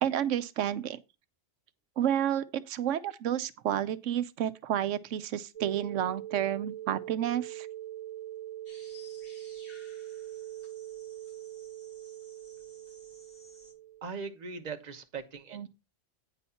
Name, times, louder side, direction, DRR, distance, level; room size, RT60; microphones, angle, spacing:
voice 1, 0.0-1.0 2.0-7.7 15.5-15.7, right 10 dB, 90° right, 1.0 m, -30 dB
sound 1, 5.5-14.0, right 13 dB, 60° right, 0.3 m, -43 dB
sound 2, 8.7-13.7, left 1 dB, 50° left, 4.3 m, -57 dB
voice 2, 14.0-15.7, right 5 dB, 40° right, 1.1 m, -40 dB
9.1 x 4.2 x 5.6 m
omnidirectional pair, 1.3 m